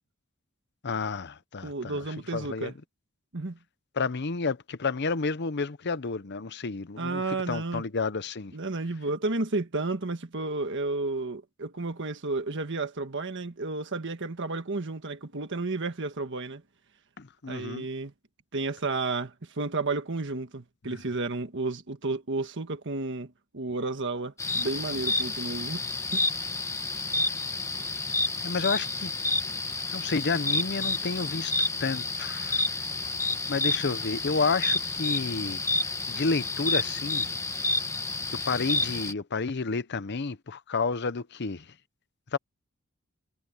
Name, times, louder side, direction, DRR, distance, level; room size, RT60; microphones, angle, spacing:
voice 1, 0.8-2.0 2.3-2.7 4.0-8.5 17.2-17.9 20.9-21.0 28.4-29.1 29.9-31.5 31.8-32.6 33.5-35.7 36.1-37.3 38.5-41.7 42.3-42.4, left 4 dB, 50° left, 0.8 m, -30 dB
voice 2, 1.6-2.7 3.3-3.6 7.0-7.8 8.5-16.6 17.5-18.1 18.5-25.8 26.1-26.2, right 3 dB, 55° right, 1.5 m, -32 dB
sound 1, 24.4-39.1, left 3 dB, 15° left, 1.3 m, -30 dB
head